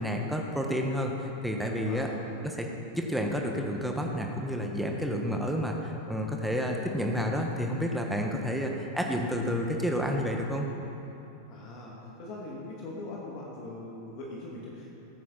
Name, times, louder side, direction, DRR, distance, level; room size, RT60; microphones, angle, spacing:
voice 1, 0.0-2.1 2.4-2.7 2.9-10.7, equal, ahead, 1 dB, 1.6 m, -30 dB
voice 2, 11.5-14.9, left 2 dB, 40° left, -3 dB, 2.4 m, -41 dB
20.5 x 9.5 x 4.3 m, 2.9 s
figure-of-eight pair, 90°, 0 cm